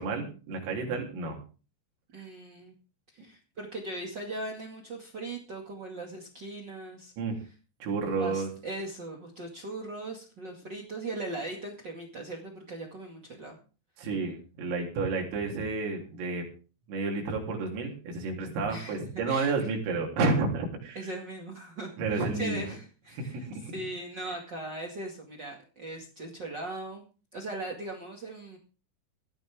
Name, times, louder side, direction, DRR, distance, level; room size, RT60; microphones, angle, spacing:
voice 1, 0.0-1.4 2.1-2.2 7.2-7.4 7.8-8.5 14.0-16.5 16.9-21.1 22.0-22.7 23.1-23.7 24.3-24.4, right 3 dB, 80° right, 0 dB, 6.3 m, -31 dB
voice 2, 2.1-2.7 3.1-7.1 8.1-13.6 18.7-19.0 19.3-19.5 20.9-27.0 27.3-28.6, right 2 dB, 45° right, 0 dB, 1.4 m, -39 dB
18.0 x 14.0 x 3.7 m, 0.37 s
omnidirectional pair, 5.9 m